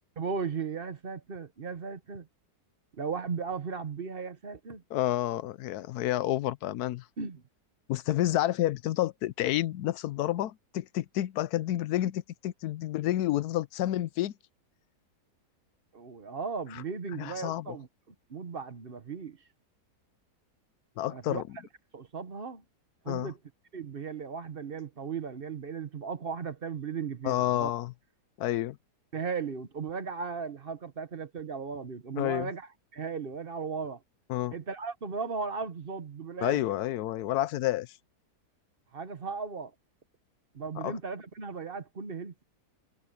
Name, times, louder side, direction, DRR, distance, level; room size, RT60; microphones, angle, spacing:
voice 1, 0.2-2.3 2.9-4.8 7.2-7.4 15.9-19.4 21.1-21.4 21.9-22.6 23.0-23.4 23.7-27.7 29.1-34.0 34.5-36.6 38.9-39.7 40.5-42.4, right 5 dB, 40° right, 1.1 m, -36 dB
voice 2, 4.9-7.0 7.9-14.3 17.2-17.7 21.0-21.4 23.1-23.3 27.2-27.9 28.4-28.8 32.2-32.5 34.3-34.5 36.4-37.9 40.8-40.9, left 14 dB, 75° left, 1.1 m, -29 dB
omnidirectional pair, 1.7 m